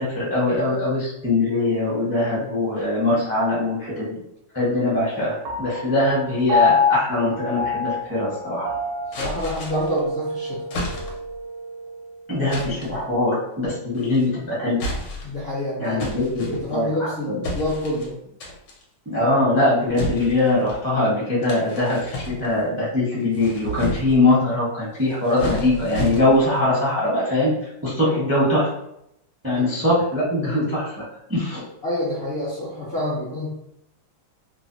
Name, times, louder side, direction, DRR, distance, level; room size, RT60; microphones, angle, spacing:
voice 1, 0.0-4.1 4.5-8.7 12.3-14.8 15.8-17.4 19.1-28.7 29.4-31.0 31.3-31.6, left 2 dB, 20° right, -7 dB, 0.4 m, -22 dB
Piano, 5.5-12.1, left 4 dB, 85° right, 1.3 m, -26 dB
sound 1, 9.1-10.0 10.7-11.4 12.5-13.0 13.9-14.3 14.7-15.4 16.0-17.0 17.4-18.1 18.4-18.8 19.9-20.8 21.4-22.7 23.2-24.3 25.0-26.6, left 1 dB, 80° left, 1.4 m, -31 dB
voice 2, 9.2-10.6 15.2-18.2 29.5-29.6 31.8-33.5, left 1 dB, 60° left, -8 dB, 0.6 m, -28 dB
3.2 x 2.1 x 2.6 m, 0.80 s
omnidirectional pair, 2.0 m